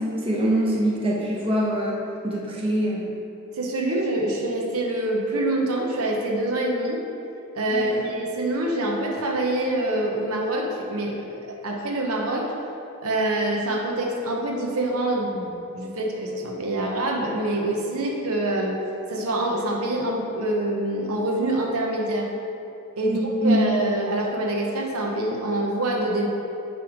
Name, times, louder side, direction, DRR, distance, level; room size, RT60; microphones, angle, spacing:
voice 1, 0.0-3.1 7.7-8.0 23.0-23.6, right 1 dB, 25° right, -5 dB, 1.0 m, -24 dB
voice 2, 3.5-7.0 7.5-12.5 13.0-18.8 19.1-22.3 23.0-26.3, right 1 dB, 90° right, -1 dB, 1.0 m, -25 dB
9.1 x 3.4 x 5.1 m, 2.8 s
head